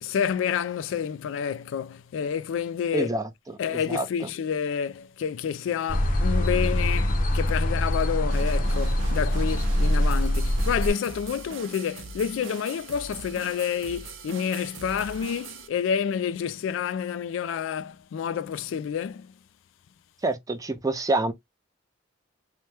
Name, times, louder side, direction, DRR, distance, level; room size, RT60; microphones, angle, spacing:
voice 1, 0.0-3.1 3.6-19.3, left 7 dB, 75° left, 0.3 m, -29 dB
voice 2, 2.9-3.3 3.7-4.0 20.2-21.3, right 2 dB, 20° right, 0.4 m, -26 dB
sound 1, 5.9-10.9, equal, 45° left, 0.7 m, -24 dB
sound 2, 8.3-15.7, right 4 dB, 85° right, 0.6 m, -42 dB
2.9 x 2.1 x 3.2 m
head